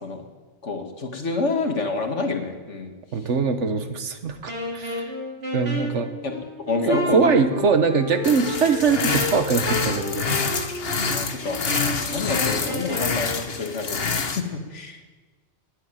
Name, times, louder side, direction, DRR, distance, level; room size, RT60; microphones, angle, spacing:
voice 1, 0.6-2.9 5.8-5.9 6.2-6.3 6.6-7.4 11.1-11.7 12.1-15.0, left 3 dB, 85° left, 4 dB, 2.2 m, -28 dB
voice 2, 3.1-5.1 5.5-6.1 6.9-10.6, right 5 dB, 85° right, 8 dB, 1.5 m, -22 dB
Wind instrument woodwind instrument, 4.5-13.5, left 1 dB, 60° right, 4.6 m, -32 dB
sound 1, 8.2-14.4, left 5 dB, 60° left, 1.4 m, -27 dB
19.5 x 8.2 x 9.1 m, 1.3 s
omnidirectional pair, 1.2 m